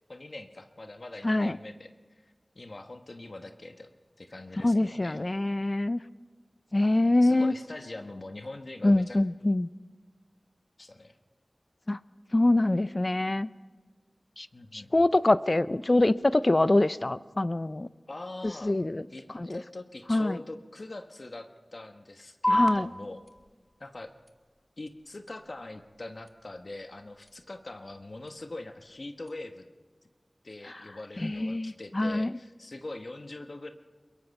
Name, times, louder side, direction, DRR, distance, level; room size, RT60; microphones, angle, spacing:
voice 1, 0.1-1.9 2.2-5.2 7.2-9.2 10.8-11.2 14.5-14.9 18.1-18.8 19.1-23.2 23.8-24.1 24.8-29.7 30.4-33.7, left 2 dB, 60° left, 6 dB, 1.3 m, -43 dB
voice 2, 1.2-1.6 4.6-6.0 6.7-7.5 8.8-9.7 11.9-12.0 12.3-13.5 14.4-14.5 14.7-17.9 18.4-19.0 19.3-19.6 20.1-20.4 22.5-22.9 31.2-32.3, left 2 dB, 45° left, 15 dB, 0.6 m, -25 dB
sound 1, 22.4-29.4, left 1 dB, 20° left, 1.3 m, -35 dB
22.5 x 22.0 x 5.4 m, 1.4 s
wide cardioid pair, 60°, 0 cm